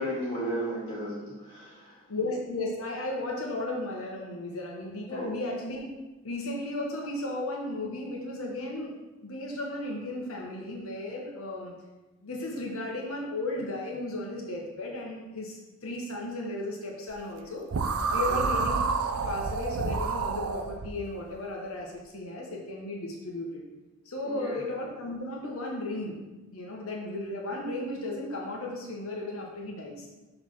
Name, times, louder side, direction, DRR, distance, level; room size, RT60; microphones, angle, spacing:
voice 1, 0.0-2.0 5.1-5.3 18.1-18.4 24.2-24.6, equal, 20° left, -8 dB, 2.1 m, -34 dB
voice 2, 2.1-5.9 6.2-8.9 9.2-11.7 12.2-17.6 18.1-18.8 19.1-23.6 24.1-26.2 26.5-30.1, left 2 dB, 75° left, -1 dB, 1.1 m, -35 dB
sound 1, 17.7-20.9, right 4 dB, 85° right, 0.5 m, -28 dB
6.3 x 3.3 x 5.7 m, 1.1 s
head